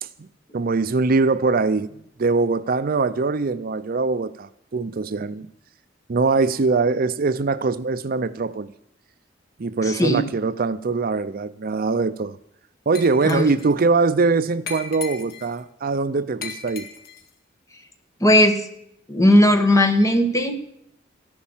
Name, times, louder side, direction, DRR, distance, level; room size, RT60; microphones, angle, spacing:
voice 1, 0.5-1.9 2.2-5.5 6.1-8.7 9.6-12.4 12.9-16.9, right 4 dB, 50° right, 14 dB, 0.5 m, -22 dB
voice 2, 9.8-10.2 13.2-13.5 18.2-18.6 19.1-20.6, left 1 dB, 15° left, 6 dB, 1.7 m, -17 dB
Glass, 12.9-13.7 14.7-15.6 16.4-17.3, left 6 dB, 55° left, 2.0 m, -37 dB
14.5 x 11.5 x 7.3 m, 0.74 s
head